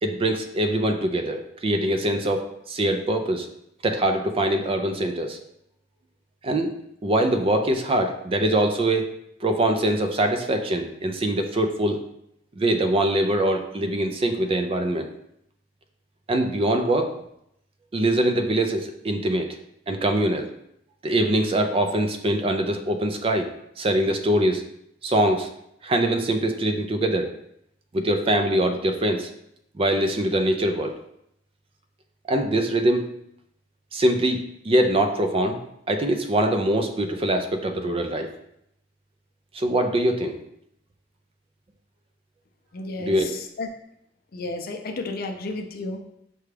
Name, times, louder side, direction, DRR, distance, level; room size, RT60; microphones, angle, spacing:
voice 1, 0.0-3.5 3.8-5.4 6.4-6.7 7.0-9.1 9.4-12.0 12.6-15.1 16.3-17.1 17.9-19.5 19.9-20.5 21.0-23.5 23.8-24.6 25.0-25.5 25.8-27.3 27.9-29.3 29.7-30.9 32.3-33.1 33.9-34.4 34.6-35.6 35.9-38.3 39.5-40.4 43.0-43.3, right 1 dB, 30° right, 5 dB, 0.4 m, -23 dB
voice 2, 42.7-43.7 44.3-46.0, left 3 dB, 55° left, 4 dB, 0.5 m, -32 dB
5.9 x 2.3 x 3.2 m, 0.77 s
head